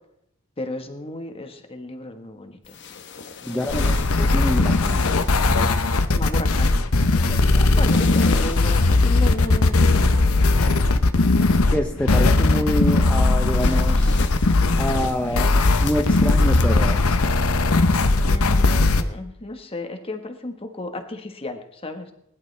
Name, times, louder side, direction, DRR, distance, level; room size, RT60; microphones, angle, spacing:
voice 1, 0.6-2.8 3.4-4.4 6.2-7.1 7.6-11.0 18.3-22.1, left 2 dB, 25° left, 6 dB, 1.5 m, -34 dB
sound 1, 2.6-5.8 7.7-9.2 13.5-16.6, left 4 dB, 55° left, 1.1 m, -35 dB
voice 2, 3.5-5.1 7.2-7.8 11.7-14.2 14.8-17.0, left 1 dB, 5° left, 3 dB, 0.6 m, -27 dB
sound 2, 3.7-19.0, left 2 dB, 85° left, 1.0 m, -18 dB
20.5 x 11.5 x 3.4 m, 0.77 s
head